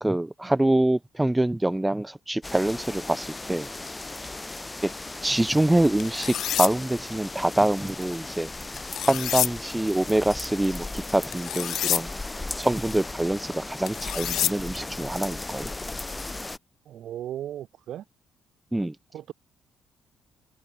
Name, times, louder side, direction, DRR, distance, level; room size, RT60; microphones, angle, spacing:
voice 1, 0.0-3.7 5.2-8.5 9.1-12.1 12.6-15.7 18.7-18.9, right 1 dB, 10° right, 2.0 m, -25 dB
sound 1, 2.4-16.6, left 2 dB, 20° left, 6.1 m, -37 dB
sound 2, 6.0-6.7 8.8-9.5 11.3-12.0 13.9-14.5, left 11 dB, 75° left, 0.8 m, -27 dB
voice 2, 16.9-18.0 19.1-19.3, right 11 dB, 75° right, 2.1 m, -36 dB
cardioid pair, 90°, 0 cm